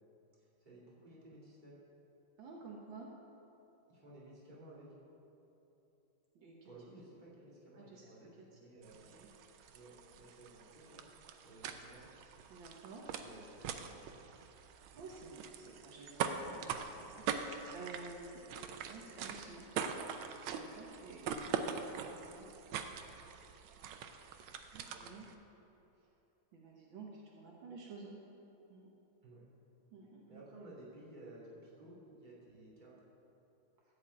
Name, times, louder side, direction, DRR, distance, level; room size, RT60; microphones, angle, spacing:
voice 1, 0.6-1.8 3.9-4.9 6.6-9.2 9.7-11.1 11.4-12.1 13.1-14.0 21.2-21.5 24.8-25.1 29.2-29.5 30.3-33.0, right 1 dB, 20° right, -7 dB, 2.7 m, -55 dB
voice 2, 2.4-3.1 6.4-6.7 7.1-7.2 7.7-8.0 8.4-8.5 8.9-9.3 12.5-13.0 14.9-19.7 20.5-22.5 24.7-25.3 26.5-28.2 28.7-28.9 29.9-30.4, right 3 dB, 70° right, -1 dB, 1.8 m, -52 dB
sound 1, 8.8-25.3, right 7 dB, 90° right, 1.5 m, -43 dB
14.5 x 5.1 x 8.4 m, 3.0 s
omnidirectional pair, 2.2 m